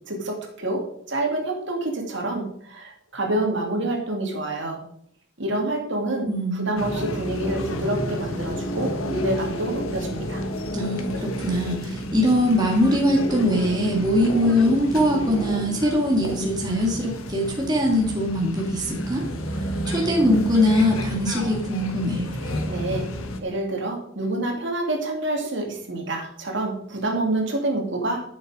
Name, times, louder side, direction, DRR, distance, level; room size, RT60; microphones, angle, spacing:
voice 1, 0.1-4.8 5.4-10.4 22.4-23.1 23.4-28.2, right 2 dB, 60° right, 1 dB, 2.4 m, -27 dB
voice 2, 6.3-6.8 10.7-19.2 19.9-22.3, left 1 dB, 20° right, -1 dB, 2.0 m, -22 dB
sound 1, 6.8-23.4, equal, 85° left, 1.5 m, -30 dB
12.5 x 7.0 x 4.9 m, 0.67 s
head